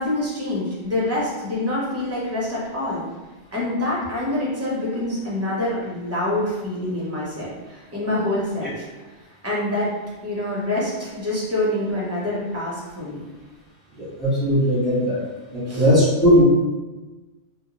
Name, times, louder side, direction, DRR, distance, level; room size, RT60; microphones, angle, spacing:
voice 1, 0.0-3.0 3.5-8.8 9.4-9.9 10.2-13.2 15.7-15.9, left 1 dB, 20° right, -6 dB, 0.5 m, -26 dB
voice 2, 14.2-15.2 15.5-16.4, equal, ahead, -10 dB, 0.9 m, -18 dB
2.4 x 2.2 x 2.9 m, 1.2 s
omnidirectional pair, 1.2 m